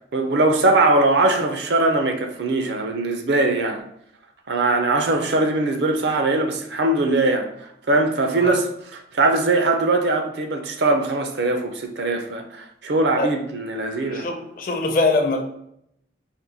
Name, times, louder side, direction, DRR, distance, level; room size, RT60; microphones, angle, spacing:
voice 1, 0.1-3.8 4.5-7.5 7.9-8.7 9.1-14.3, right 2 dB, 65° right, 0.5 m, -21 dB
voice 2, 14.1-15.4, left 3 dB, 50° left, 0.6 m, -22 dB
4.4 x 2.2 x 3.9 m
head